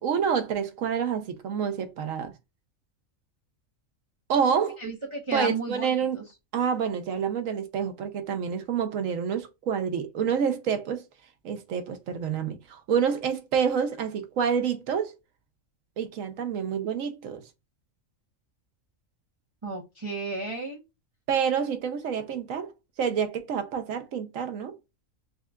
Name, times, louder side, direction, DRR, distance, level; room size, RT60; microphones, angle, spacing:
voice 1, 0.0-2.3 4.3-4.8 5.3-6.2 6.5-11.0 11.4-15.1 16.0-17.4 21.3-22.7 23.0-24.7, right 7 dB, 75° right, 1.2 m, -28 dB
voice 2, 4.8-5.9 6.1-6.2 19.6-20.8, right 3 dB, 25° right, 0.9 m, -32 dB
6.5 x 2.4 x 2.3 m
omnidirectional pair, 1.4 m